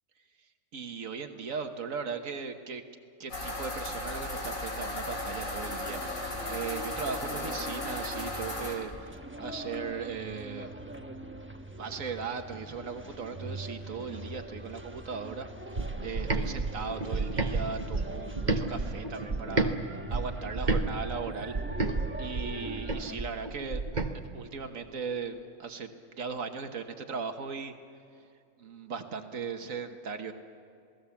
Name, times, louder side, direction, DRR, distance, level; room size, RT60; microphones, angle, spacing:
voice 1, 0.7-2.8 3.2-10.8 11.7-19.7 20.1-21.6 22.2-23.8 24.3-25.9 26.2-27.7 28.6-30.3, right 5 dB, 80° right, 6 dB, 1.6 m, -38 dB
sound 1, 3.3-8.7, left 2 dB, 80° left, 4.6 m, -36 dB
sound 2, 4.9-23.2, right 1 dB, 10° right, 1.0 m, -43 dB
sound 3, 15.8-19.7 20.1-24.1, right 3 dB, 35° right, 1.3 m, -31 dB
27.5 x 18.0 x 7.2 m, 2.4 s
omnidirectional pair, 1.4 m